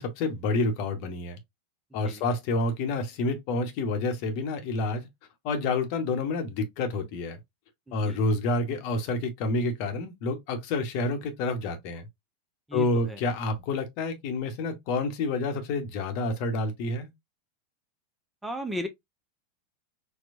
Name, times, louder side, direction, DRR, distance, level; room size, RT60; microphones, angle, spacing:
voice 1, 0.0-1.4 1.9-5.1 5.4-7.4 7.9-12.0 12.7-17.1, left 2 dB, 50° left, 0.9 m, -28 dB
voice 2, 7.9-8.2 12.7-13.2 18.4-18.9, equal, 5° right, 0.7 m, -35 dB
4.5 x 2.2 x 2.5 m
figure-of-eight pair, 90°, 0 cm